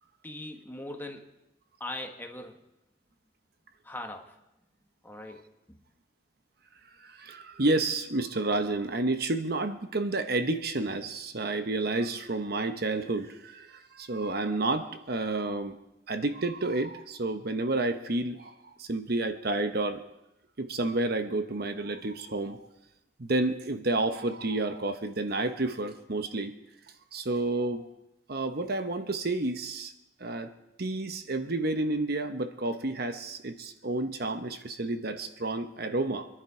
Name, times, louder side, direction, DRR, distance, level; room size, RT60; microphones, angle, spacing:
voice 1, 0.2-1.3 1.8-2.6 3.8-4.4 5.0-5.4 5.7-5.8, left 1 dB, 10° left, 3 dB, 1.4 m, -40 dB
voice 2, 7.0-15.8 16.1-18.5 18.8-20.0 20.6-22.6 23.2-26.5 27.1-27.9 28.3-29.9 30.2-30.5 30.8-36.3, right 2 dB, 55° right, 8 dB, 1.0 m, -30 dB
24.5 x 11.0 x 4.9 m, 0.91 s
head